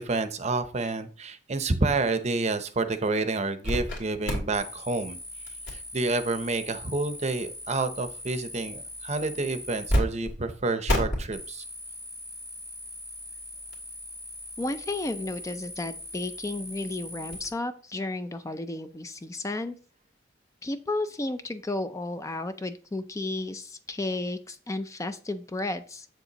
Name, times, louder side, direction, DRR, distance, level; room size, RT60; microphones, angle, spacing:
voice 1, 0.0-5.2 5.7-11.6, right 3 dB, 40° right, 10 dB, 0.7 m, -29 dB
sound 1, 3.6-4.0 4.3-10.0 10.3-10.4 10.9-17.5, left 1 dB, 80° left, 2.6 m, -34 dB
voice 2, 14.6-19.7 20.6-26.1, left 2 dB, 15° left, 10 dB, 0.4 m, -33 dB
7.9 x 6.7 x 2.9 m, 0.38 s
head